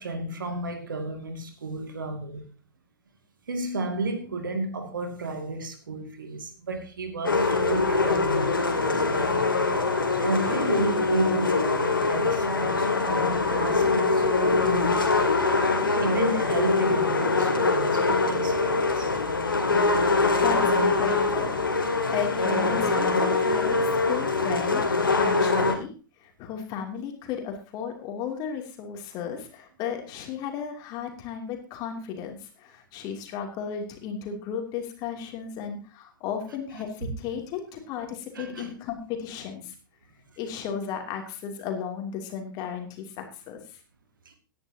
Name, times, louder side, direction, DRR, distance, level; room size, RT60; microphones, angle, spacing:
voice 1, 0.0-2.5 3.5-19.1 36.4-37.1 38.3-38.7 44.3-44.4, right 2 dB, 70° right, 2.4 m, -33 dB
sound 1, 7.2-25.7, left 3 dB, 80° left, 2.3 m, -23 dB
voice 2, 20.4-21.6 22.1-23.8 24.0-24.8 25.2-25.9 26.2-39.7 40.4-43.8, left 7 dB, 35° left, 3.0 m, -34 dB
17.5 x 10.5 x 2.9 m
figure-of-eight pair, 100°, 11 cm